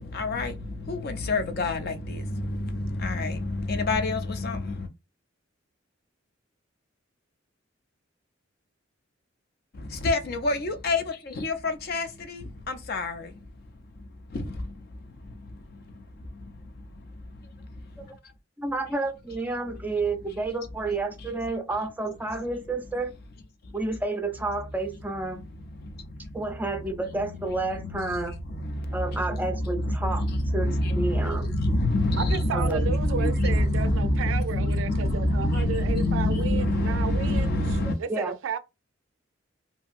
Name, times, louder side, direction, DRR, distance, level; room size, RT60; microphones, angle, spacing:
voice 1, 0.0-4.9 9.7-13.5 13.9-18.3 21.2-21.3 23.6-23.8 25.2-26.4 26.7-38.0, left 1 dB, 50° left, 0.4 m, -28 dB
voice 2, 18.6-23.1 23.7-25.4 26.3-28.3 28.9-30.2 30.5-31.5 32.5-32.9 38.1-38.3, right 2 dB, 10° right, 0.4 m, -30 dB
voice 3, 32.2-37.5 38.0-38.6, right 6 dB, 75° right, 0.3 m, -33 dB
2.7 x 2.6 x 2.4 m
head